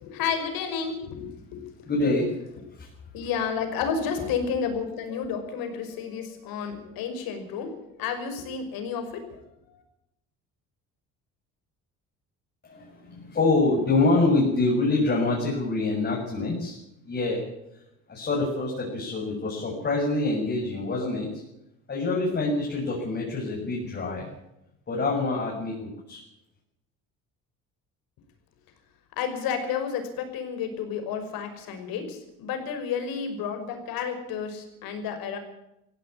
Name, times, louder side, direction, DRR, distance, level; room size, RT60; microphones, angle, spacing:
voice 1, 0.0-1.6 3.1-9.4 9.7-9.8 29.2-35.4, left 6 dB, 80° left, 7 dB, 5.7 m, -31 dB
voice 2, 1.9-2.3 2.7-2.9 12.6-16.8 17.1-17.4 18.1-21.3 21.9-24.3 24.9-26.2, left 2 dB, 30° left, -2 dB, 7.1 m, -25 dB
17.0 x 16.0 x 9.9 m, 0.86 s
cardioid pair, 130°, 35 cm